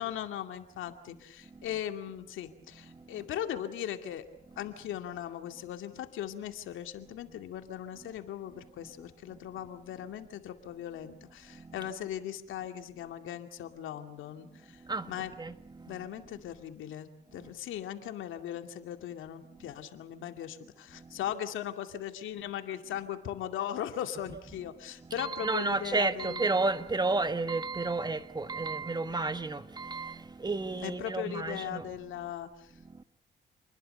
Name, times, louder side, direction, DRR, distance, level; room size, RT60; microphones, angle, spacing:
voice 1, 0.0-4.3 4.6-15.4 15.9-26.5 30.8-32.7, left 10 dB, 85° left, 2.4 m, -39 dB
voice 2, 1.5-1.8 2.7-3.3 4.5-4.7 8.8-8.9 11.5-11.9 14.7-16.1 17.3-17.5 20.9-21.3 24.3-24.7 25.0-31.8 32.8-33.0, right 3 dB, 20° right, 1.6 m, -33 dB
28.5 x 21.0 x 6.8 m
cardioid pair, 90°, 20 cm